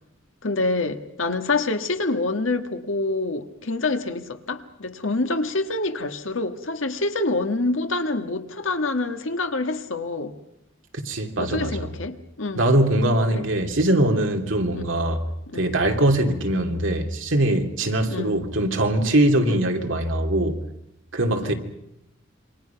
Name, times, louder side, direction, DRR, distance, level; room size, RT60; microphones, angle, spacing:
voice 1, 0.4-10.4 11.4-12.7 13.3-13.4 14.7-14.9 15.5-15.7 16.3-16.4 18.1-18.5 19.5-19.6 21.4-21.5, left 2 dB, 80° left, 1.7 m, -26 dB
voice 2, 11.0-11.9 12.6-15.2 15.5-20.6 21.1-21.5, right 1 dB, 75° right, 2.7 m, -22 dB
27.5 x 24.5 x 5.9 m
head